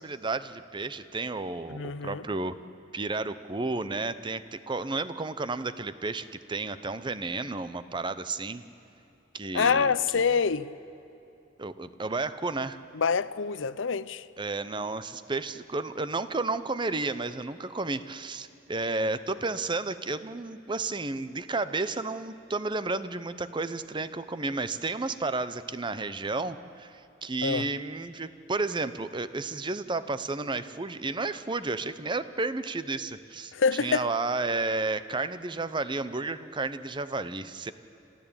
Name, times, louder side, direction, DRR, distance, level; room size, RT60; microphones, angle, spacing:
voice 1, 0.0-2.6 2.9-8.6 9.3-10.3 11.6-12.8 14.4-37.7, right 3 dB, 25° right, 0.7 m, -32 dB
voice 2, 1.7-2.2 9.5-10.7 12.9-14.2 27.4-27.7 33.5-34.1, left 5 dB, 85° left, 0.6 m, -26 dB
27.0 x 15.0 x 8.8 m
head